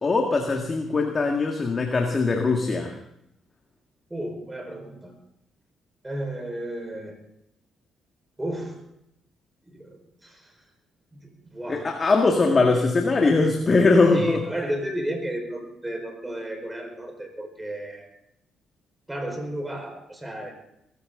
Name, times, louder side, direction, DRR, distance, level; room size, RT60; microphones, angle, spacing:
voice 1, 0.0-3.0 11.7-14.4, left 3 dB, 35° left, 3 dB, 1.9 m, -21 dB
voice 2, 4.1-5.1 6.0-7.1 8.4-8.8 9.7-10.5 11.1-11.9 14.1-18.1 19.1-20.5, right 1 dB, 15° right, 4 dB, 4.8 m, -33 dB
21.0 x 14.0 x 3.9 m, 0.78 s
cardioid pair, 90°, 0 cm